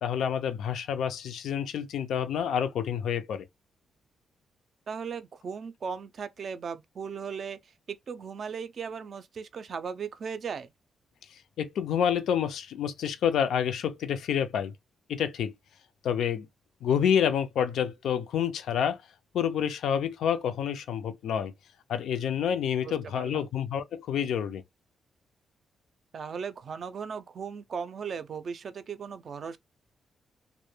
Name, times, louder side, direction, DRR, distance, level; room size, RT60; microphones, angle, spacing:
voice 1, 0.0-3.5 11.6-14.7 15.1-15.5 16.0-16.5 16.8-19.0 19.3-21.5 21.9-24.6, left 8 dB, 90° left, 0.3 m, -28 dB
voice 2, 4.9-7.6 7.9-10.7 23.1-23.5 26.1-29.6, right 6 dB, 45° right, 0.3 m, -37 dB
2.1 x 2.1 x 2.9 m
wide cardioid pair, 155°, 0 cm